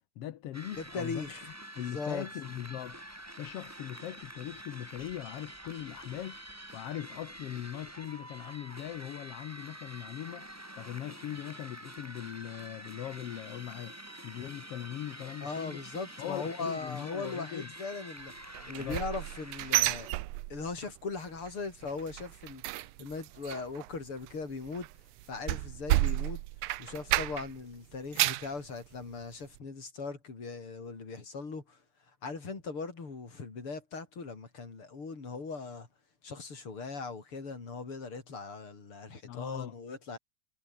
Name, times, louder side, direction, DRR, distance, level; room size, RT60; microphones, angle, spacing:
voice 1, 0.2-1.4 1.8-3.0 3.4-13.9 14.2-15.8 16.2-17.7 18.7-19.0 39.2-39.8, left 12 dB, 60° left, 1.9 m, -40 dB
sound 1, 0.5-20.1, right 1 dB, 5° right, 2.3 m, -47 dB
voice 2, 0.8-1.4 1.8-2.3 15.4-18.3 18.7-20.1 20.5-24.9 25.3-26.4 26.8-31.8 32.2-35.9 36.2-40.2, left 4 dB, 45° left, 5.3 m, -39 dB
sound 2, 18.5-20.9 21.2-21.5 21.8-27.6 27.9-28.5 29.0-29.1 29.6-29.7, right 17 dB, 85° right, 2.2 m, -31 dB
omnidirectional pair, 3.4 m